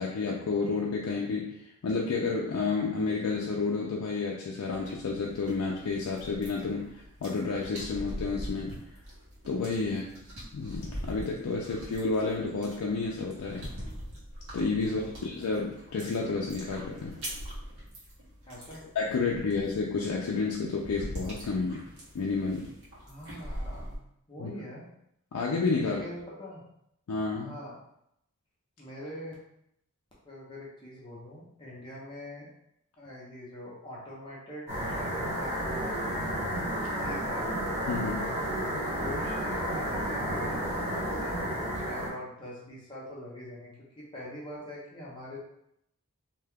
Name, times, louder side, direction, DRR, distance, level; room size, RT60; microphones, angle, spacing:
voice 1, 0.0-6.9 7.2-8.8 9.5-10.0 10.5-13.7 14.5-17.1 19.0-21.8 22.1-22.7 24.4-24.5 25.3-26.0 27.1-27.5 37.9-38.3, left 4 dB, 80° left, -2 dB, 0.4 m, -30 dB
sound 1, 4.7-24.0, equal, 65° right, 1.2 m, -43 dB
voice 2, 14.8-15.4 18.4-18.8 23.0-24.9 25.8-26.6 27.3-27.8 28.8-29.3 30.2-32.5 33.0-35.8 36.2-36.5 37.0-37.5 38.9-45.4, left 1 dB, 20° left, -6 dB, 0.7 m, -44 dB
sound 2, 34.7-42.1, equal, 25° right, 1.1 m, -31 dB
2.7 x 2.2 x 3.4 m, 0.77 s
head